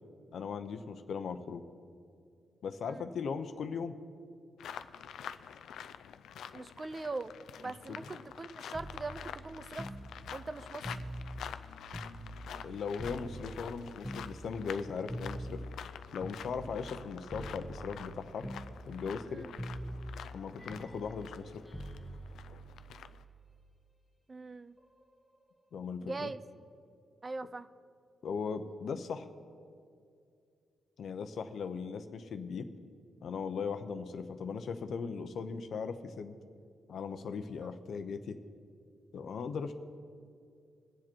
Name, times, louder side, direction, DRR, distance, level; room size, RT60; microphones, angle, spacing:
voice 1, 0.3-1.6 2.6-3.9 7.9-8.2 12.6-15.6 16.1-18.5 18.9-19.5 20.3-21.7 25.7-26.3 28.2-29.3 31.0-32.7 33.2-36.4 36.9-38.4 39.1-39.7, left 5 dB, 70° left, 9 dB, 0.8 m, -38 dB
sound 1, 4.6-23.2, left 8 dB, 90° left, 0.4 m, -48 dB
voice 2, 6.5-10.0 10.3-10.9 19.3-19.5 24.3-24.8 26.0-26.4 27.2-27.7, right 3 dB, 30° right, 13 dB, 0.5 m, -41 dB
sound 2, 8.7-12.7 13.0-17.0 17.3-18.1 18.4-19.3 19.6-23.6 24.8-25.0, right 1 dB, ahead, 1.4 m, -44 dB
21.5 x 7.5 x 4.6 m, 2.4 s
cardioid pair, 95°, 0 cm